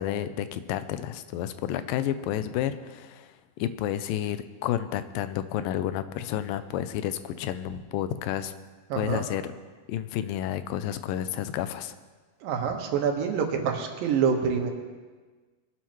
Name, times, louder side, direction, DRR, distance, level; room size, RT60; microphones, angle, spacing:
voice 1, 0.0-8.5 9.0-9.4 9.9-12.0, left 11 dB, 85° left, 12 dB, 2.3 m, -31 dB
voice 2, 8.9-9.2 12.4-14.7, right 6 dB, 85° right, 3 dB, 3.0 m, -26 dB
22.0 x 11.5 x 3.1 m, 1.4 s
omnidirectional pair, 4.0 m